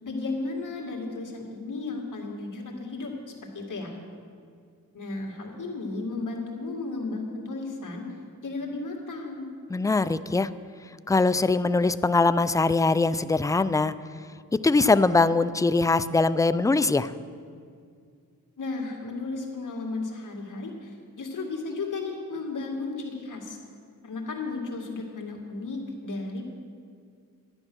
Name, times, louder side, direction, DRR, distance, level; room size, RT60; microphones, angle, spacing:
voice 1, 0.0-3.1 3.5-4.0 4.9-8.1 8.4-9.5 18.6-23.6 24.0-26.5, left 3 dB, 60° left, 0 dB, 2.3 m, -34 dB
voice 2, 9.7-10.5 11.1-13.9 14.6-17.1, left 3 dB, 10° left, 14 dB, 0.3 m, -22 dB
11.5 x 9.8 x 6.2 m, 2.2 s
cardioid pair, 75°, 34 cm